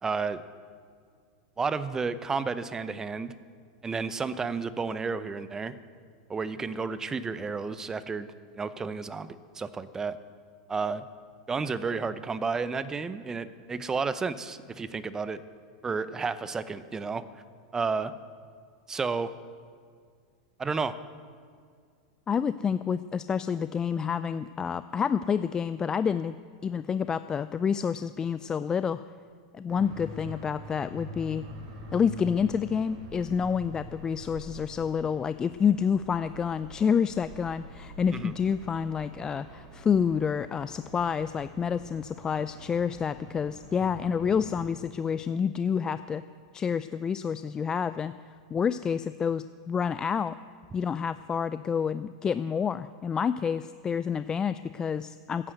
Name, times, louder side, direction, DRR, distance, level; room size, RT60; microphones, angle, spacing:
voice 1, 0.0-0.4 1.6-3.3 3.8-5.8 6.3-8.3 8.5-10.2 10.7-11.1 11.5-15.4 15.8-17.2 17.7-18.1 18.9-19.3 20.6-21.0 38.1-38.3, right 4 dB, 15° right, 14 dB, 0.8 m, -31 dB
voice 2, 22.3-26.4 26.6-29.0 29.5-31.4 31.9-46.2 46.5-48.1 48.5-50.4 50.7-55.5, left 7 dB, 20° left, 13 dB, 0.4 m, -28 dB
sound 1, 29.7-44.7, right 1 dB, 55° right, 3.5 m, -46 dB
14.5 x 9.9 x 8.0 m, 2.1 s
hypercardioid pair, 110°, 3 cm